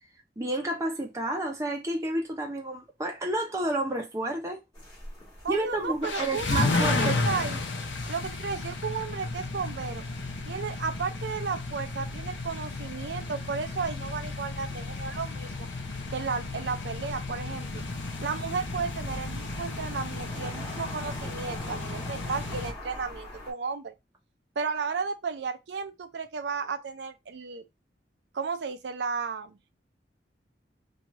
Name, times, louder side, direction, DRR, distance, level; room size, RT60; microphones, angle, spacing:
voice 1, 0.4-4.6 5.5-7.2, right 1 dB, 15° right, 0.6 m, -30 dB
sound 1, 4.7-23.5, left 1 dB, 20° left, 1.2 m, -45 dB
voice 2, 5.4-7.6 8.1-10.0 10.5-15.7 16.1-17.8 18.2-23.9 24.6-27.6 28.3-29.5, right 5 dB, 70° right, 0.5 m, -33 dB
sound 2, 6.0-22.7, left 3 dB, 85° left, 0.6 m, -33 dB
2.7 x 2.4 x 2.9 m
head